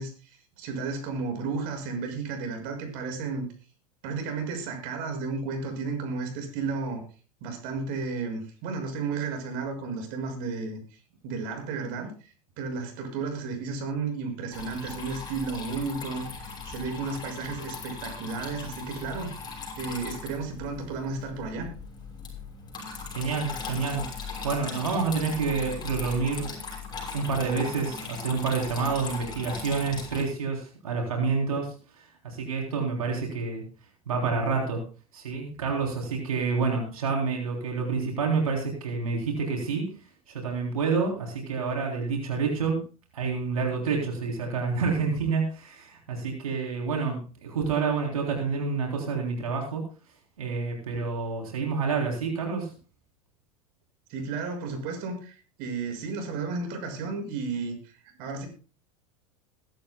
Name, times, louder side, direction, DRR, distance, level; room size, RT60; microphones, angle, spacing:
voice 1, 0.0-3.5 4.0-7.0 7.4-19.3 19.8-21.7 54.1-58.5, right 4 dB, 55° right, 4 dB, 6.4 m, -33 dB
Water tap faucet / Trickle dribble, 14.5-30.2, left 4 dB, 25° left, 6.4 m, -39 dB
voice 2, 23.1-24.0 24.4-26.5 27.1-33.6 34.1-34.8 35.1-39.9 40.3-42.8 43.1-49.8 50.4-52.7, right 4 dB, 80° right, 1 dB, 3.5 m, -28 dB
22.0 x 12.0 x 2.3 m, 0.36 s
hypercardioid pair, 90°, 18 cm